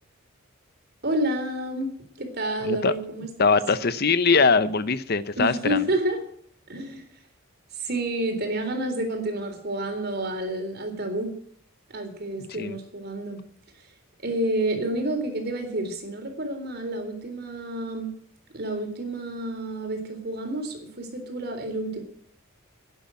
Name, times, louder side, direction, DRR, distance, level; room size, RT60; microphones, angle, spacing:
voice 1, 1.0-1.9 2.2-3.6 5.4-6.2 6.7-7.1 7.7-11.3 11.9-13.4 14.2-18.1 18.5-22.0, right 1 dB, 50° right, 4 dB, 3.7 m, -29 dB
voice 2, 2.6-2.9 3.4-5.8 12.6-12.8, left 4 dB, 50° left, 14 dB, 0.8 m, -22 dB
11.0 x 10.5 x 9.0 m, 0.63 s
head